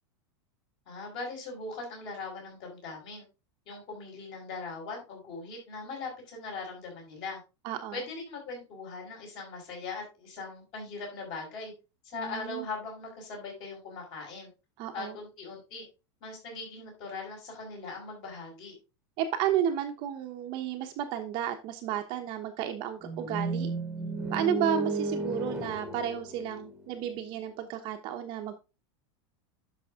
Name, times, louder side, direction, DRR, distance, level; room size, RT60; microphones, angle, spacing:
voice 1, 0.9-3.3 3.7-7.4 7.9-11.7 12.0-14.5 14.9-15.8 16.2-18.7, left 3 dB, 35° left, 1 dB, 6.1 m, -40 dB
voice 2, 7.6-8.0 12.1-12.7 14.8-15.2 19.2-23.7 24.3-28.6, right 10 dB, 35° right, 5 dB, 1.1 m, -32 dB
sound 1, 23.0-27.1, right 3 dB, 5° right, 1.7 m, -33 dB
10.5 x 6.1 x 3.7 m, 0.29 s
supercardioid pair, 170°, 14 cm